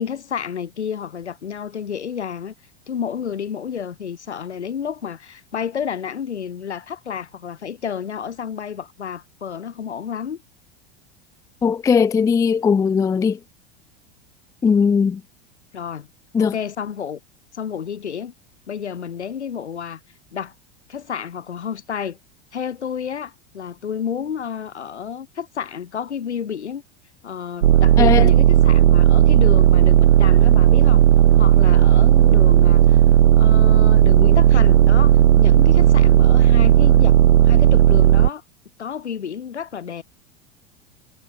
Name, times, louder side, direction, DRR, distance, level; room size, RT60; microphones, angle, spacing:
voice 1, 0.0-2.5 2.9-10.4 15.7-16.1 16.4-17.2 17.5-18.3 18.7-20.0 20.3-20.5 20.9-22.2 22.5-26.8 27.2-31.0 31.4-33.0 33.4-38.4 38.8-40.0, left 7 dB, 80° left, 2.7 m, -30 dB
voice 2, 11.6-13.4 14.6-15.2 16.3-16.5 28.0-28.3, left 6 dB, 10° left, 0.4 m, -18 dB
sound 1, 27.6-38.3, right 11 dB, 80° right, 0.5 m, -13 dB
figure-of-eight pair, 85°, 34 cm